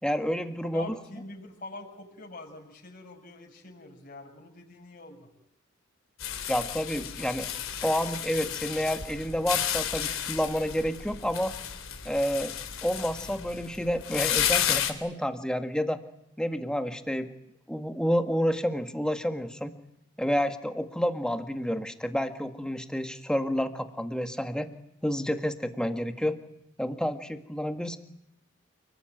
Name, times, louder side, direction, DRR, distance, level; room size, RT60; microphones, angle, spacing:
voice 1, 0.0-0.9 6.5-7.5 7.8-11.5 12.0-12.5 12.8-16.0 16.4-17.3 17.7-19.7 20.2-24.7 25.0-26.4 26.8-28.0, equal, 5° left, 7 dB, 1.8 m, -29 dB
voice 2, 0.7-5.3, left 2 dB, 40° left, -1 dB, 6.2 m, -44 dB
sound 1, 6.2-14.9, left 9 dB, 75° left, 3.5 m, -32 dB
29.5 x 19.5 x 9.2 m, 0.84 s
head